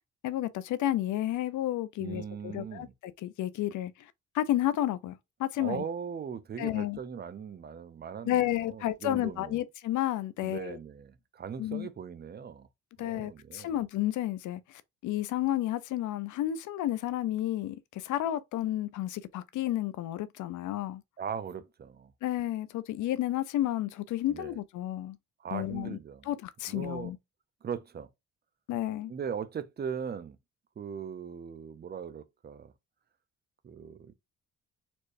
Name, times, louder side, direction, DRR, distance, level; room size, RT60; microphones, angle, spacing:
voice 1, 0.2-3.9 4.3-5.8 6.6-7.0 8.2-10.8 11.6-11.9 13.0-21.0 22.2-25.2 25.5-26.0 26.3-27.2 28.7-29.1, left 13 dB, 75° left, 0.6 m, -31 dB
voice 2, 2.0-2.9 5.6-9.6 10.4-12.7 13.0-13.8 21.2-22.1 24.3-24.6 25.4-26.3 26.7-27.1 27.6-28.1 29.1-30.4 30.8-32.7 33.6-34.1, right 7 dB, 35° right, 0.6 m, -39 dB
4.4 x 3.1 x 2.6 m
cardioid pair, 90°, 30 cm